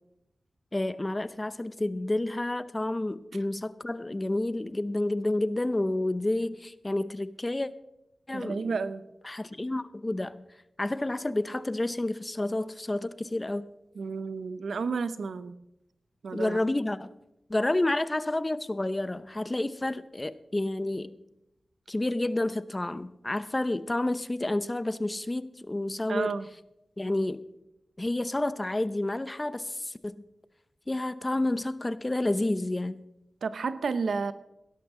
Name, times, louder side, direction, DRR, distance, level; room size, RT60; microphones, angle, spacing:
voice 1, 0.7-7.7 8.3-8.7 9.2-10.4 10.8-13.7 16.3-17.1 17.5-21.2 21.9-26.3 27.0-27.4 28.0-30.2 30.9-33.0, left 1 dB, 25° left, 0.7 m, -30 dB
voice 2, 8.3-9.0 14.0-15.6 16.2-16.6 26.1-26.5 33.4-34.3, right 5 dB, 90° right, 0.7 m, -31 dB
17.0 x 12.5 x 3.8 m
cardioid pair, 65°, 0 cm